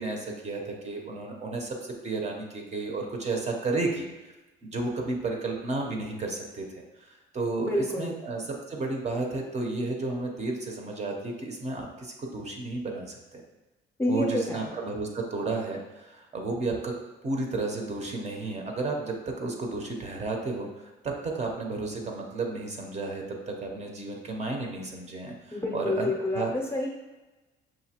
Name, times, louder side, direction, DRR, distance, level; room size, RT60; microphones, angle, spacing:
voice 1, 0.0-4.1 4.6-6.6 7.0-13.4 14.1-25.3 25.7-26.5, right 3 dB, 35° right, 1 dB, 0.6 m, -32 dB
voice 2, 7.6-8.2 14.0-14.7 25.5-26.9, left 1 dB, 10° left, -1 dB, 0.6 m, -28 dB
5.8 x 2.6 x 2.8 m, 1.1 s
cardioid pair, 125°, 21 cm